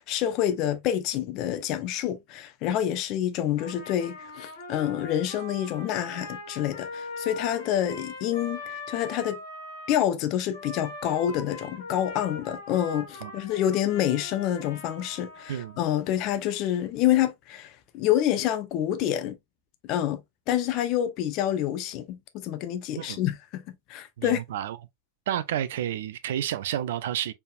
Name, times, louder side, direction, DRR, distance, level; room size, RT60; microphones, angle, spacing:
voice 1, 0.0-9.4 9.9-19.4 19.8-20.2 20.5-24.4, left 11 dB, 40° left, 0.6 m, -27 dB
Trumpet, 3.6-10.0 10.5-15.8, left 2 dB, 55° left, 1.4 m, -41 dB
voice 2, 24.2-24.8 25.3-27.3, right 11 dB, 55° right, 0.4 m, -30 dB
4.3 x 3.4 x 2.3 m
figure-of-eight pair, 90°, 0 cm